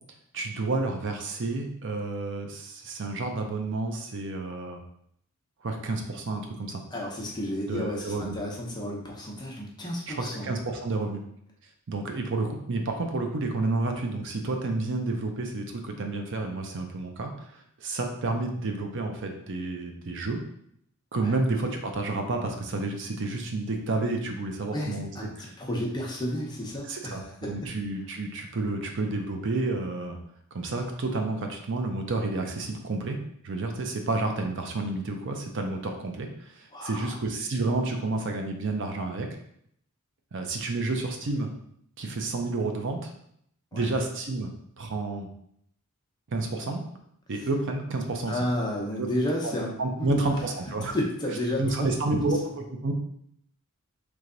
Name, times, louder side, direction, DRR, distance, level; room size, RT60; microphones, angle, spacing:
voice 1, 0.3-4.8 5.6-6.8 7.7-8.4 10.1-11.2 11.9-20.4 21.1-25.5 26.9-30.2 30.5-33.2 33.4-39.3 40.3-41.5 42.0-43.1 43.7-45.3 46.3-46.8 47.3-48.4 49.0-49.1 49.4-51.0 51.6-52.9, right 2 dB, 55° right, 4 dB, 0.6 m, -30 dB
voice 2, 6.9-10.5 21.2-21.4 24.7-27.5 36.7-37.2 43.7-43.9 48.3-50.3 50.9-51.9, left 1 dB, 20° left, -2 dB, 0.8 m, -32 dB
3.3 x 3.2 x 3.8 m, 0.70 s
head